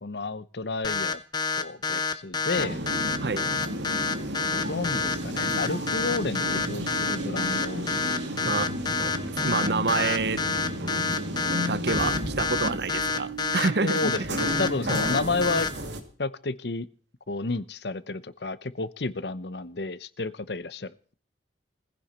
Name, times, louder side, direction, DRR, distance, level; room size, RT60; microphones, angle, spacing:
voice 1, 0.0-1.2 1.6-2.8 3.6-3.8 4.5-7.9 13.8-15.7 16.2-16.9 17.3-21.1, left 3 dB, 65° left, 0.9 m, -31 dB
sound 1, 0.8-15.7, left 4 dB, 25° left, 1.1 m, -28 dB
sound 2, 2.5-16.0, equal, 85° right, 2.6 m, -32 dB
voice 2, 8.4-8.7 9.0-10.4 11.7-14.0, right 4 dB, 65° right, 0.8 m, -28 dB
19.0 x 15.5 x 4.4 m
head